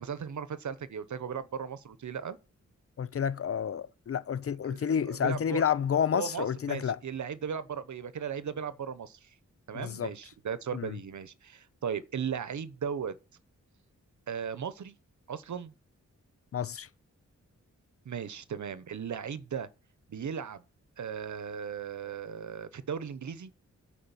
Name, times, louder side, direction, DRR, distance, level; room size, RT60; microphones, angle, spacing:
voice 1, 0.0-2.4 4.7-5.6 6.1-9.3 9.7-13.2 14.3-15.0 15.3-15.7 18.0-19.7 20.1-20.6 21.0-23.5, right 7 dB, 70° right, 0.9 m, -37 dB
voice 2, 3.0-7.0 9.7-10.1 10.7-11.0 16.5-16.9, left 8 dB, 50° left, 0.5 m, -30 dB
8.9 x 5.0 x 7.0 m
wide cardioid pair, 110°, 30 cm